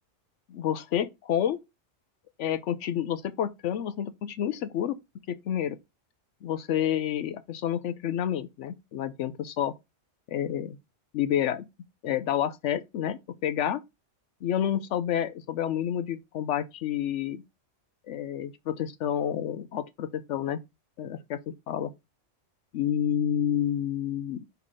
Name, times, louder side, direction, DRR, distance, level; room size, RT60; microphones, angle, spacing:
voice 1, 0.5-1.6 2.4-5.0 5.3-5.8 6.4-9.7 10.3-10.8 11.1-11.7 12.0-13.8 14.4-17.4 18.1-20.6 21.0-21.9 22.7-24.4, left 10 dB, 75° left, 0.9 m, -29 dB
5.7 x 3.4 x 4.9 m
omnidirectional pair, 1.3 m